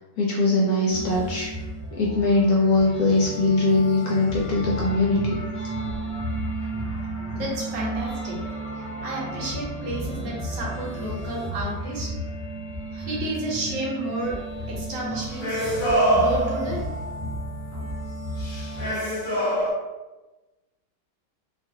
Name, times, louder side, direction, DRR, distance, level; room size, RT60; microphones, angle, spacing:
voice 1, 0.2-1.5 2.0-5.4, left 2 dB, 70° left, -4 dB, 0.9 m, -21 dB
sound 1, 0.9-18.9, right 1 dB, 15° right, 0.5 m, -33 dB
voice 2, 7.3-8.4 9.0-12.1 12.9-14.4 14.7-15.6 16.1-16.8, right 1 dB, 75° right, -3 dB, 1.4 m, -31 dB
sound 2, 15.1-17.0 18.4-19.7, right 1 dB, 45° left, 0.6 m, -24 dB
2.9 x 2.4 x 2.6 m, 1.1 s
omnidirectional pair, 1.9 m